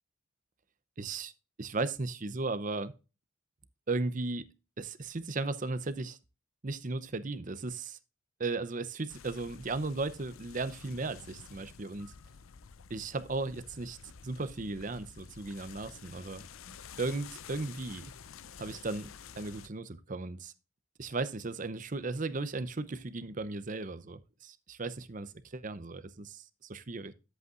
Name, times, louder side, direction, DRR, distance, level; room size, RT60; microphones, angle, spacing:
voice 1, 1.0-1.3 1.6-2.9 3.9-4.4 4.8-6.2 6.6-8.0 8.4-12.1 12.9-14.0 14.2-16.4 17.0-18.1 18.6-19.1 19.4-20.5 21.0-27.1, right 3 dB, 40° right, 0.7 m, -36 dB
sound 1, 9.1-19.7, left 6 dB, 85° left, 0.6 m, -51 dB
11.0 x 8.1 x 2.5 m
head